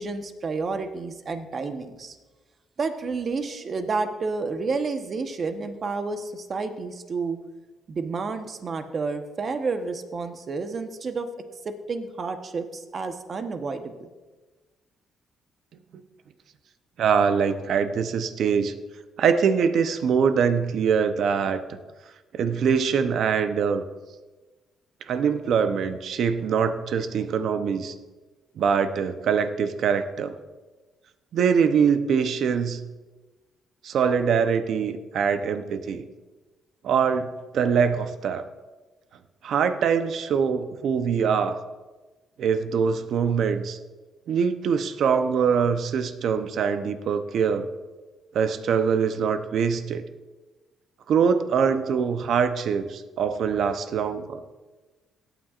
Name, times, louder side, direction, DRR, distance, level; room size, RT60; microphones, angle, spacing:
voice 1, 0.0-2.2 2.8-7.4 7.9-11.3 11.6-14.1, right 4 dB, 45° right, 7 dB, 1.0 m, -30 dB
voice 2, 17.0-18.7 19.2-21.6 22.3-23.8 25.1-27.9 28.6-30.3 31.3-32.8 33.8-36.1 36.8-38.5 39.4-41.6 42.4-43.8 44.3-47.7 48.3-50.0 51.1-54.4, right 6 dB, 70° right, 10 dB, 0.7 m, -23 dB
17.0 x 9.0 x 2.5 m, 1.2 s
cardioid pair, 90°, 0 cm